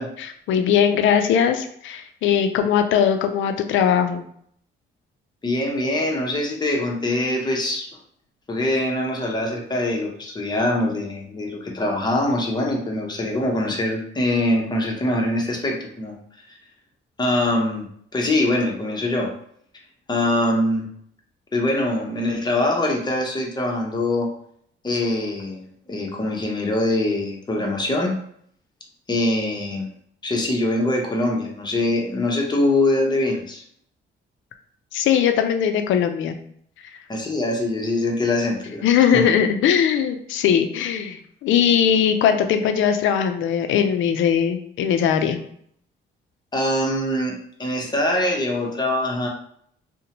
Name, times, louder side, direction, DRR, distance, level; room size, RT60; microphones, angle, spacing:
voice 1, 0.2-4.2 34.9-36.4 38.8-45.4, left 8 dB, 75° left, 7 dB, 0.4 m, -20 dB
voice 2, 5.4-7.9 8.5-16.2 17.2-17.9 18.1-19.3 20.1-20.9 21.5-24.3 24.8-28.2 29.1-29.9 30.2-33.6 37.1-38.8 39.1-39.3 46.5-49.3, left 1 dB, 20° left, 0 dB, 0.7 m, -23 dB
2.6 x 2.1 x 2.8 m, 0.66 s
cardioid pair, 90°, 20 cm